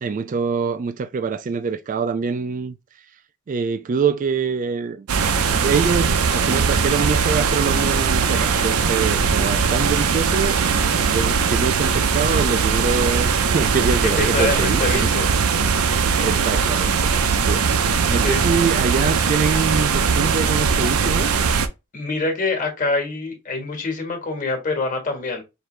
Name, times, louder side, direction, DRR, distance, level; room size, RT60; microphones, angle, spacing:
voice 1, 0.0-2.8 3.5-5.1 5.5-15.1 16.1-17.1 17.5-17.7 18.1-21.3, right 5 dB, 35° right, 0.3 m, -25 dB
sound 1, 5.1-21.7, right 5 dB, 85° right, 0.6 m, -20 dB
voice 2, 14.0-15.3 16.1-16.3 18.2-18.4 21.9-25.4, left 3 dB, 40° left, 1.4 m, -25 dB
4.8 x 2.6 x 3.2 m
head